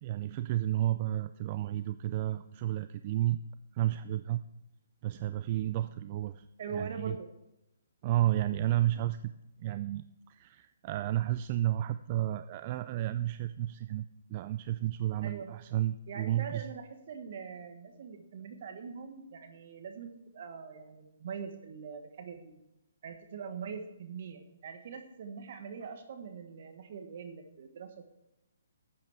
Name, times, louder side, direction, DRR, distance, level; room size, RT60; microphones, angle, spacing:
voice 1, 0.0-3.4 3.7-4.4 5.0-6.5 6.7-7.2 8.0-9.3 9.6-16.7, right 13 dB, 35° right, 12 dB, 0.4 m, -32 dB
voice 2, 6.6-7.3 15.2-15.5 16.1-22.5 23.0-28.1, right 6 dB, 50° right, 6 dB, 1.4 m, -43 dB
12.0 x 8.5 x 4.7 m, 0.88 s
hypercardioid pair, 140°, 0 cm